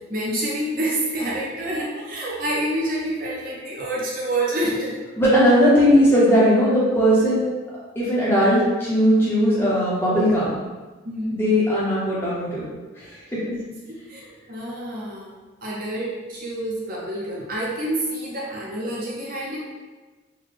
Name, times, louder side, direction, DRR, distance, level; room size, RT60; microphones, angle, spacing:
voice 1, 0.1-5.0 11.0-11.4 13.5-13.8 14.1-15.3 15.6-19.6, right 1 dB, 45° right, -5 dB, 0.6 m, -28 dB
voice 2, 5.2-7.4 7.9-10.6 11.3-12.7 13.1-13.5, equal, 10° left, -8 dB, 0.8 m, -18 dB
3.7 x 2.2 x 3.3 m, 1.3 s
head